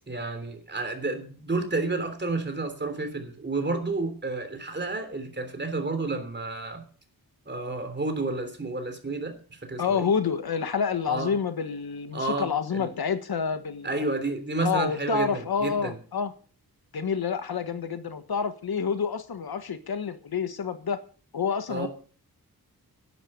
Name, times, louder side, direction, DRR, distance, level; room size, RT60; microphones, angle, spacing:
voice 1, 0.1-6.8 7.5-10.1 11.1-11.3 12.1-12.9 13.8-16.0 21.7-21.9, right 3 dB, 30° right, 3.3 m, -31 dB
voice 2, 9.8-14.1 14.6-16.3 16.9-21.0 21.3-21.9, left 6 dB, 75° left, 1.4 m, -28 dB
11.0 x 10.0 x 6.7 m
wide cardioid pair, 135°, 37 cm